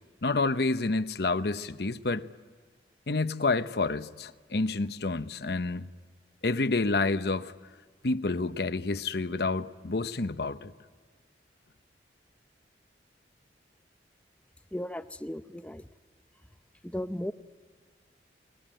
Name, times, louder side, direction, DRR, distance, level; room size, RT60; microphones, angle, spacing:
voice 1, 0.2-2.3 3.1-5.9 6.4-7.5 8.0-10.7, left 3 dB, 65° left, 0.9 m, -29 dB
voice 2, 14.7-15.8 16.8-17.3, left 1 dB, 5° left, 0.7 m, -35 dB
29.0 x 20.5 x 8.9 m
head